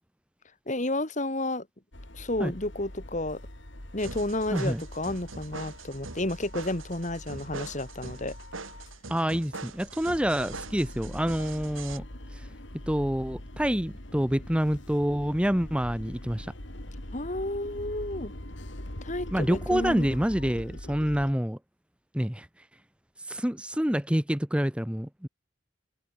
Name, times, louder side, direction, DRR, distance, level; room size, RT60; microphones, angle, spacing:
voice 1, 0.7-1.7 2.1-3.4 3.9-8.4 17.1-18.3 19.0-20.1, left 1 dB, 35° left, 2.4 m, -31 dB
sound 1, 1.9-9.0 9.3-21.3, left 1 dB, 65° left, 3.6 m, -43 dB
sound 2, 4.0-12.0, right 3 dB, 90° right, 3.4 m, -42 dB
voice 2, 4.5-4.8 9.1-12.0 12.3-12.5 12.9-16.5 19.3-21.6 22.1-22.7 23.2-25.3, equal, 5° right, 1.0 m, -27 dB
open air
head